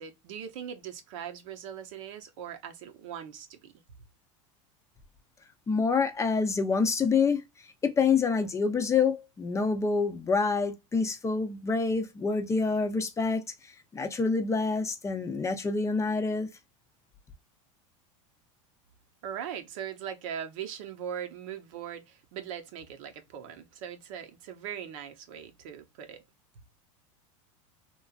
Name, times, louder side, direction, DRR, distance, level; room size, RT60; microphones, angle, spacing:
voice 1, 0.0-3.7 19.2-26.2, right 9 dB, 70° right, 0.8 m, -40 dB
voice 2, 5.7-7.4 7.8-13.4 13.9-16.5, left 4 dB, 15° left, 0.5 m, -27 dB
2.9 x 2.4 x 2.3 m
supercardioid pair, 125°, 17 cm